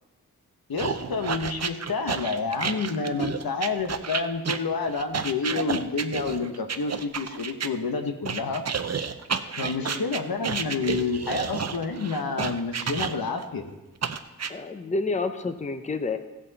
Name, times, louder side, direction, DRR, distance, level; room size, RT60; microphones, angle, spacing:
voice 1, 0.7-8.6 9.6-13.7, left 4 dB, 80° left, 6 dB, 1.1 m, -29 dB
sound 1, 0.8-7.7 8.2-13.4 14.0-14.5, right 6 dB, 45° right, 0.6 m, -30 dB
voice 2, 14.5-16.2, left 3 dB, 20° left, 8 dB, 0.6 m, -29 dB
15.5 x 8.3 x 4.1 m, 1.1 s
wide cardioid pair, 100°, 36 cm